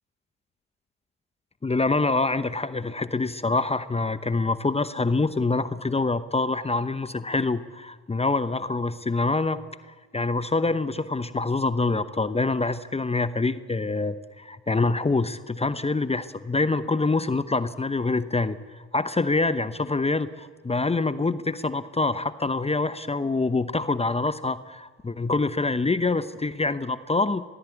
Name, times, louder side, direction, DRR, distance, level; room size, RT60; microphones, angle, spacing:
voice 1, 1.6-9.6 10.1-27.4, left 3 dB, 15° left, 13 dB, 0.9 m, -25 dB
21.5 x 16.5 x 8.5 m, 1.4 s
hypercardioid pair, 55°, 38 cm